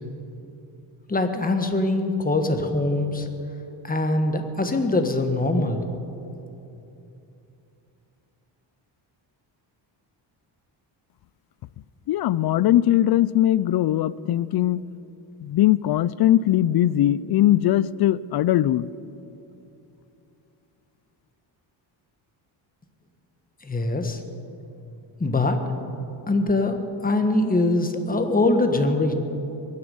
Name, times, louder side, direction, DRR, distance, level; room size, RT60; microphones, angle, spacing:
voice 1, 1.1-3.3 3.8-5.8 23.6-24.2 25.2-25.6 26.3-26.8 27.0-29.1, left 2 dB, 20° left, 6 dB, 1.4 m, -22 dB
voice 2, 12.1-14.8 15.4-18.9, left 13 dB, 55° left, 19 dB, 0.5 m, -20 dB
23.0 x 9.8 x 5.4 m, 2.8 s
cardioid pair, 100°, 47 cm